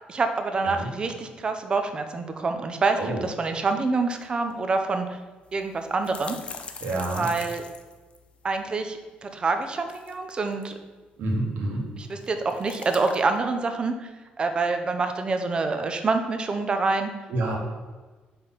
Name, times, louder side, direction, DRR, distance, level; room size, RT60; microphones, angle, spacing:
voice 1, 0.1-5.2 5.5-6.4 7.2-7.6 8.4-10.7 12.0-14.1 14.4-17.1, right 3 dB, 30° right, 6 dB, 0.6 m, -26 dB
sound 1, 4.1-4.2 4.5-4.6 5.4-8.6 9.6-10.7 12.0-13.4, left 5 dB, 40° left, 0.6 m, -42 dB
voice 2, 6.8-7.2 11.2-11.8 17.3-17.6, right 2 dB, 80° right, -1 dB, 1.6 m, -28 dB
5.3 x 4.1 x 5.8 m, 1.3 s
cardioid pair, 135°, 3 cm